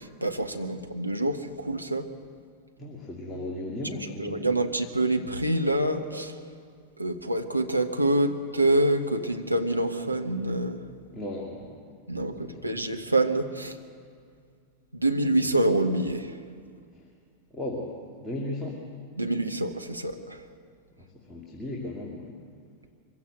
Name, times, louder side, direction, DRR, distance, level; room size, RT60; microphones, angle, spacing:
voice 1, 0.2-2.1 4.2-6.4 7.0-10.8 12.1-13.8 14.9-16.4 19.2-20.5, right 1 dB, 85° right, 5 dB, 1.2 m, -26 dB
voice 2, 2.8-4.5 11.1-11.8 12.3-12.9 16.9-17.0 17.5-17.9 18.2-18.8 21.0-22.3, left 1 dB, 10° left, -3 dB, 2.7 m, -36 dB
23.5 x 15.5 x 7.9 m, 2.1 s
figure-of-eight pair, 90°, 0 cm